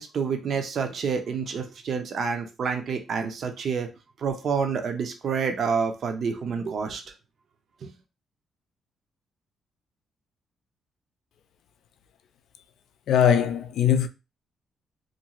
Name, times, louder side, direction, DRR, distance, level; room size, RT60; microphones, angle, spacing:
voice 1, 0.0-3.9 4.2-7.0 7.8-7.9, right 5 dB, 55° right, 0.6 m, -28 dB
voice 2, 13.1-14.1, left 8 dB, 75° left, 0.3 m, -20 dB
2.5 x 2.3 x 2.9 m
cardioid pair, 90°, 0 cm